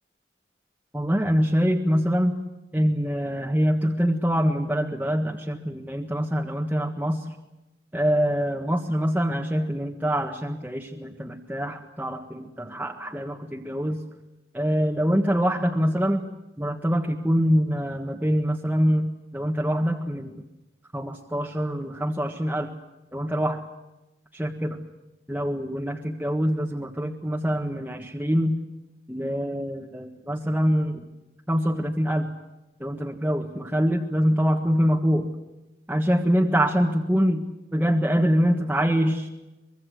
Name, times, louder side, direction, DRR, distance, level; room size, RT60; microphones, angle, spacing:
voice 1, 0.9-2.3 2.7-7.2 7.9-14.0 14.5-16.2 16.6-20.4 20.9-22.7 23.1-23.6 24.3-24.8 25.3-28.5 29.1-31.0 31.5-32.3 32.8-35.3 35.9-37.4 37.7-39.3, equal, 10° right, 0 dB, 1.6 m, -24 dB
24.5 x 23.0 x 8.0 m, 1.0 s
head